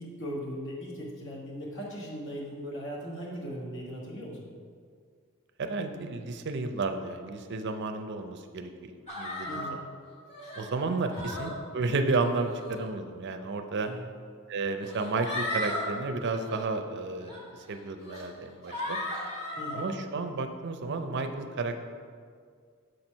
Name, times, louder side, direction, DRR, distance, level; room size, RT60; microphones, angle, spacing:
voice 1, 0.0-4.5 9.4-9.8 11.2-11.3 13.8-14.1 19.5-19.9, equal, 60° left, -3 dB, 1.5 m, -38 dB
voice 2, 5.6-8.9 9.2-9.6 10.6-13.9 14.5-19.0 19.7-21.8, right 3 dB, 55° right, 7 dB, 0.5 m, -32 dB
sound 1, 9.1-9.7 10.3-10.6 11.1-11.5 12.4-12.8 13.8-13.9 14.8-15.8 16.3-16.6 17.3-17.4 18.0-18.2 18.7-19.8, left 1 dB, 30° left, 1.5 m, -35 dB
6.6 x 4.4 x 5.3 m, 2.1 s
head